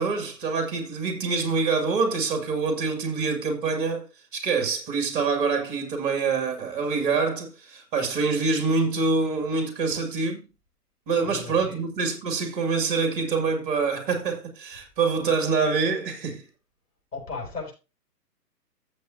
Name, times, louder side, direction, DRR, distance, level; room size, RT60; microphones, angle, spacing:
voice 1, 0.0-4.1 4.3-10.4 11.1-16.4, right 4 dB, 30° right, 2.2 m, -25 dB
voice 2, 11.2-11.9 17.1-17.7, left 4 dB, 70° left, 6.9 m, -36 dB
14.5 x 7.5 x 2.7 m
figure-of-eight pair, 130°, 48 cm